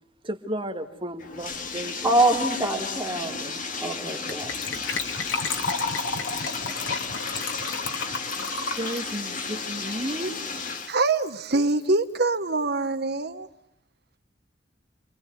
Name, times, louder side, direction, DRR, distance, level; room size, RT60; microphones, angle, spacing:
voice 1, 0.2-2.2 3.3-3.5 8.8-10.4, right 1 dB, 30° right, 5 dB, 1.9 m, -33 dB
Bathtub (filling or washing), 1.2-11.0, left 4 dB, 45° left, 2.0 m, -33 dB
voice 2, 2.0-3.4 3.8-4.8, right 1 dB, 10° right, -3 dB, 3.8 m, -25 dB
Gurgling / Trickle dribble / Fill (with liquid), 4.3-10.5 10.8-10.9 11.1-11.3 11.6-11.7, left 4 dB, 85° left, 2.7 m, -32 dB
voice 3, 10.9-13.5, right 3 dB, 60° right, 8 dB, 1.3 m, -24 dB
29.5 x 24.5 x 8.0 m, 0.75 s
head